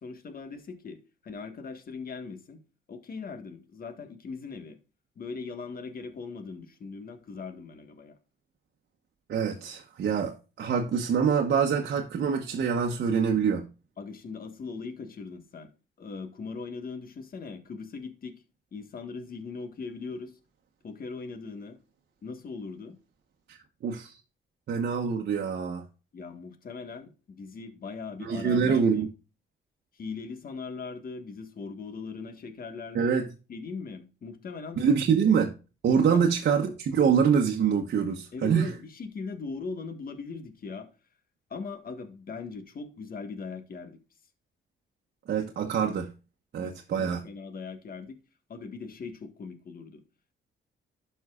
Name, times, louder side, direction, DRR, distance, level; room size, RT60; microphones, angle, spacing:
voice 1, 0.0-1.0 1.2-2.6 2.9-4.8 5.2-8.2 14.0-15.7 16.0-18.4 18.7-20.4 20.8-21.8 22.2-23.0 26.1-29.1 29.9-33.2 33.5-34.8 36.1-36.2 38.3-40.9 41.5-44.0 46.5-48.2 48.5-50.0, left 4 dB, 45° left, 1.6 m, -40 dB
voice 2, 9.3-13.7 23.5-24.1 24.7-25.8 28.2-29.1 32.9-33.3 34.8-35.5 35.8-38.7 45.3-46.1 46.5-47.2, right 6 dB, 60° right, 1.1 m, -25 dB
12.0 x 5.5 x 2.4 m
cardioid pair, 90°, 20 cm